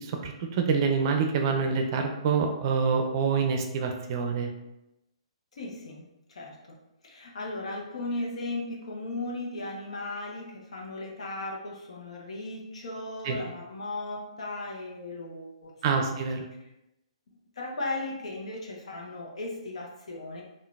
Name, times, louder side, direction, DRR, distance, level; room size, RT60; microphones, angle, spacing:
voice 1, 0.0-4.5 13.2-13.4 15.8-16.5, right 5 dB, 45° right, 4 dB, 0.5 m, -26 dB
voice 2, 5.5-6.0 6.3-6.6 7.0-16.1 17.6-20.4, left 2 dB, 75° left, -1 dB, 0.9 m, -36 dB
3.7 x 2.5 x 2.4 m, 0.91 s
hypercardioid pair, 135°, 3 cm